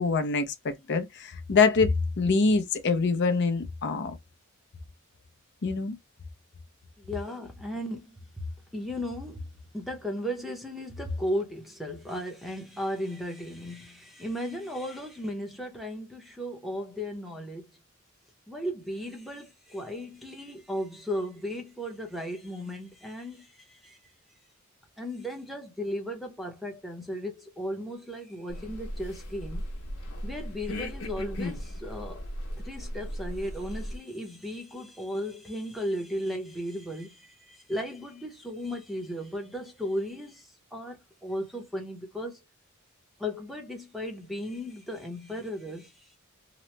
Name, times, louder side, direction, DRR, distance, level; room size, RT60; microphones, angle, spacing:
voice 1, 0.0-4.1 5.6-6.0, left 4 dB, 55° left, 0.5 m, -25 dB
voice 2, 7.0-9.5 9.7-17.7 18.5-24.0 25.0-29.7 30.2-32.2 32.6-42.4 43.2-46.1, equal, ahead, 0.6 m, -35 dB
sound 1, 28.5-34.0, equal, 85° left, 0.9 m, -37 dB
2.9 x 2.0 x 3.1 m
head